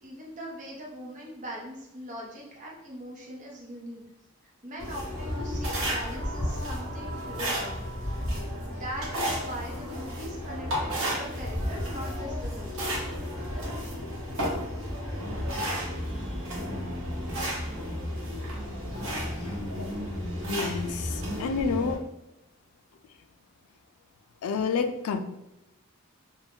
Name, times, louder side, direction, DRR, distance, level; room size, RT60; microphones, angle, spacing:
voice 1, 0.0-4.0 4.6-7.7 8.7-12.7, equal, 35° right, -2 dB, 0.7 m, -40 dB
sound 1, 4.8-21.9, equal, 70° right, 1.0 m, -32 dB
voice 2, 20.5-22.0 24.4-25.2, left 5 dB, 90° left, 8 dB, 0.3 m, -29 dB
2.5 x 2.2 x 3.4 m, 0.91 s
head